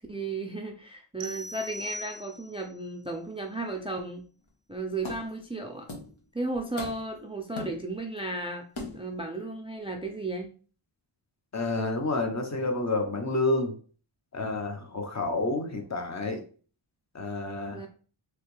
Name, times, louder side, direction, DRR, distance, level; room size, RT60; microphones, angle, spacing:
voice 1, 0.1-4.3 4.7-5.9 6.3-8.6 8.9-10.5 17.7-17.9, right 2 dB, 10° right, 2 dB, 0.4 m, -34 dB
sound 1, 1.2-2.7, equal, 60° right, 0.5 m, -40 dB
sound 2, 4.5-4.6 5.0-5.4 5.9-6.2 6.5-7.2 7.6-8.2 8.8-9.2, left 2 dB, 65° left, 1.2 m, -40 dB
voice 2, 11.5-13.7 14.3-16.4 17.1-17.8, left 2 dB, 35° left, 4 dB, 0.8 m, -29 dB
3.2 x 2.9 x 3.1 m, 0.41 s
cardioid pair, 55°, 50 cm